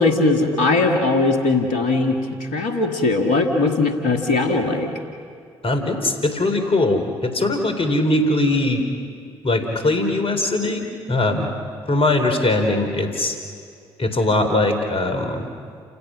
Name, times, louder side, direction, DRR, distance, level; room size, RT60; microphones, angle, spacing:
voice 1, 0.0-2.2 2.5-4.9, left 3 dB, 70° left, 4 dB, 2.2 m, -19 dB
voice 2, 5.6-8.8 9.4-11.5 11.9-13.4 14.0-15.4, left 2 dB, 45° left, 6 dB, 4.0 m, -21 dB
29.0 x 16.5 x 6.4 m, 2.2 s
hypercardioid pair, 45°, 14 cm